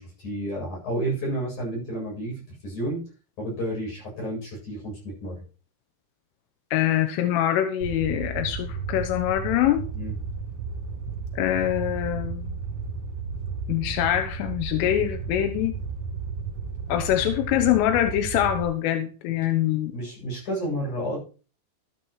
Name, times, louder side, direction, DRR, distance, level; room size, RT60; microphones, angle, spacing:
voice 1, 0.0-2.3 2.6-3.0 3.4-5.3 9.9-10.1 19.9-21.2, right 1 dB, 40° left, -3 dB, 9.3 m, -31 dB
voice 2, 6.7-9.9 11.3-12.6 13.7-15.8 16.9-19.9, left 12 dB, 90° left, 7 dB, 3.5 m, -24 dB
Fire, 7.8-18.6, right 5 dB, 35° right, 3.7 m, -33 dB
13.0 x 11.0 x 3.2 m, 0.37 s
omnidirectional pair, 5.5 m